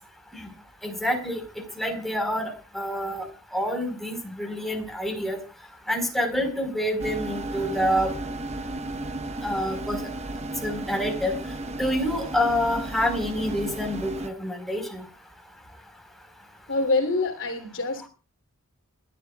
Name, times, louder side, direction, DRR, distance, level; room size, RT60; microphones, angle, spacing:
voice 1, 0.8-1.4 1.8-3.3 3.5-5.4 5.9-8.1 9.4-10.1 10.6-11.3 11.8-15.0, equal, ahead, 2 dB, 4.3 m, -27 dB
sound 1, 7.0-14.3, right 2 dB, 30° right, 1.0 m, -34 dB
voice 2, 16.7-18.1, left 3 dB, 60° left, 4 dB, 3.1 m, -25 dB
29.5 x 12.0 x 2.4 m, 0.32 s
head